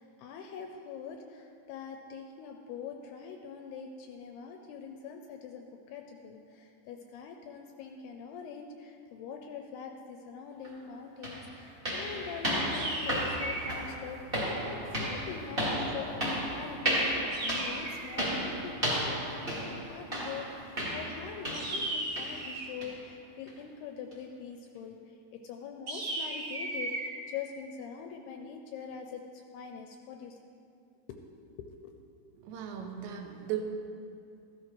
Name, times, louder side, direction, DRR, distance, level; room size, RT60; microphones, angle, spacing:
voice 1, 0.0-30.4 31.6-32.0, left 6 dB, 85° left, 4 dB, 2.4 m, -44 dB
sound 1, 10.6-10.7 11.2-21.9 22.2-22.4 22.8-23.0 23.5-23.6 24.1-24.2, equal, 30° right, 1.0 m, -33 dB
sound 2, 12.7-13.9 17.3-18.3 21.5-22.8 25.9-27.1, right 1 dB, 50° right, 3.2 m, -36 dB
voice 2, 32.4-33.6, right 10 dB, 85° right, 3 dB, 3.3 m, -37 dB
14.5 x 13.5 x 3.2 m, 2.4 s
omnidirectional pair, 5.1 m